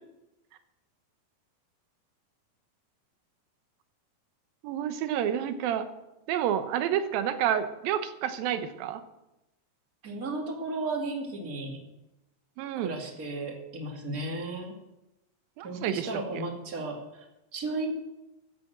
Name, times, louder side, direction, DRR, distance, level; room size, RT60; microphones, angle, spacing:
voice 1, 4.6-5.9 6.3-9.0 12.6-12.9 15.6-16.1, right 10 dB, 70° right, 9 dB, 2.6 m, -29 dB
voice 2, 10.0-11.8 12.8-14.7 15.6-17.2 17.5-17.9, right 2 dB, 30° right, 1 dB, 2.0 m, -34 dB
14.0 x 8.4 x 7.8 m, 0.94 s
omnidirectional pair, 4.6 m